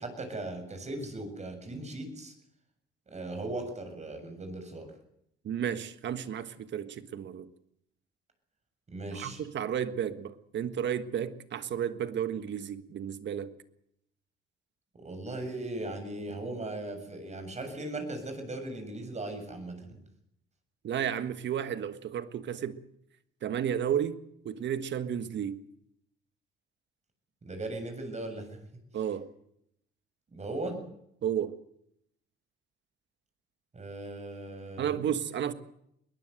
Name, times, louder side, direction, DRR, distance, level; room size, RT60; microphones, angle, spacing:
voice 1, 0.0-2.3 3.1-4.9 8.9-9.4 14.9-20.0 27.4-28.6 30.3-30.8 33.7-35.0, right 2 dB, 35° right, 7.3 m, -38 dB
voice 2, 5.4-7.5 9.1-13.5 20.8-22.8 23.4-24.2 24.4-25.6 28.9-29.3 31.2-31.6 34.8-35.5, right 9 dB, 65° right, 1.6 m, -32 dB
21.5 x 19.5 x 8.0 m
cardioid pair, 90°, 20 cm